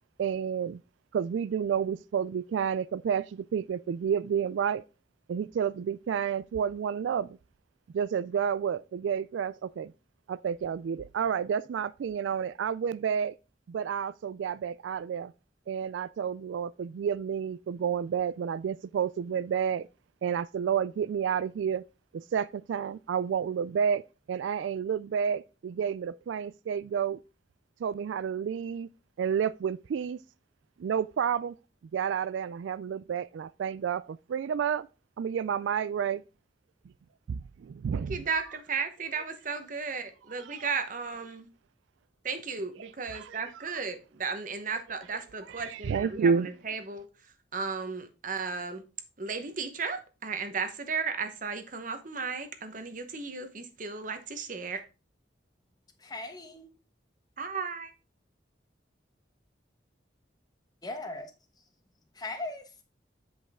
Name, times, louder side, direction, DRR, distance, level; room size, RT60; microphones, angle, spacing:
voice 1, 0.2-0.8 1.1-4.8 5.3-7.4 7.9-9.9 10.3-13.3 13.7-15.3 15.7-19.9 20.2-21.8 22.1-24.0 24.3-27.2 27.8-28.9 29.2-30.2 30.8-31.6 31.9-34.9 35.2-36.2 37.3-38.2 40.5-40.7 43.1-43.4 45.5-46.5, right 7 dB, 85° right, 0.3 m, -30 dB
voice 2, 37.9-41.5 42.2-47.1 47.5-48.8 49.2-54.8 57.4-57.9, right 5 dB, 45° right, 1.0 m, -35 dB
voice 3, 56.0-56.7 60.8-61.2 62.1-62.8, left 2 dB, 20° left, 1.0 m, -38 dB
7.9 x 5.3 x 3.6 m
head